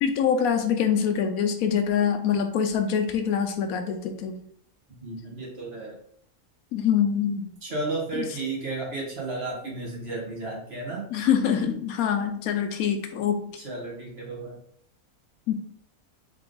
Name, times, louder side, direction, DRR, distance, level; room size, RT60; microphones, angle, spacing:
voice 1, 0.0-4.4 6.7-7.5 8.1-8.3 11.1-13.4 15.5-15.6, left 8 dB, 75° left, 6 dB, 1.0 m, -24 dB
voice 2, 5.0-6.0 7.6-11.0 11.5-11.8 13.6-14.6, right 2 dB, 45° right, -4 dB, 1.6 m, -33 dB
3.8 x 3.4 x 3.7 m, 0.66 s
omnidirectional pair, 1.6 m